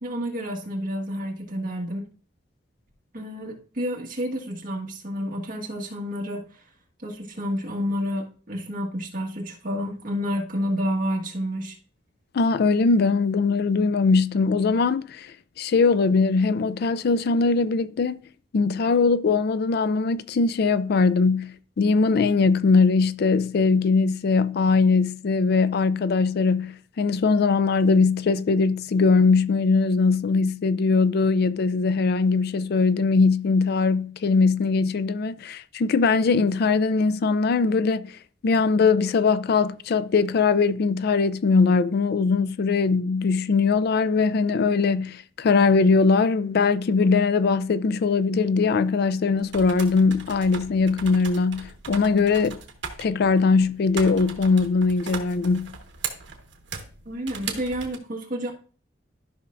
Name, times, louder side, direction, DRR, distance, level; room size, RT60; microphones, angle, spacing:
voice 1, 0.0-2.1 3.1-6.4 7.0-11.8 57.1-58.5, equal, 50° right, 1.7 m, -29 dB
voice 2, 12.3-18.2 18.5-38.1 38.4-52.6 53.0-55.7, left 4 dB, 60° left, 0.4 m, -21 dB
sound 1, 49.3-58.0, right 6 dB, 70° right, 1.4 m, -38 dB
13.0 x 5.7 x 2.6 m
head